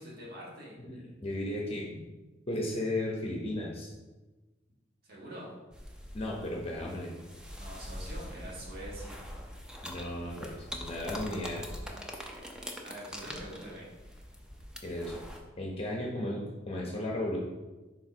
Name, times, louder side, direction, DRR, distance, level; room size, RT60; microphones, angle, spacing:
voice 1, 0.0-0.8 5.0-5.5 7.6-9.2 11.3-11.9 12.8-13.9, right 1 dB, 55° right, -5 dB, 1.6 m, -45 dB
voice 2, 0.8-1.9 2.5-3.9 6.1-7.1 9.8-11.6 14.8-15.2 15.6-17.4, left 1 dB, 30° left, -2 dB, 0.8 m, -35 dB
sound 1, 5.7-15.4, equal, 5° right, 0.6 m, -43 dB
4.6 x 3.9 x 5.3 m, 1.2 s
head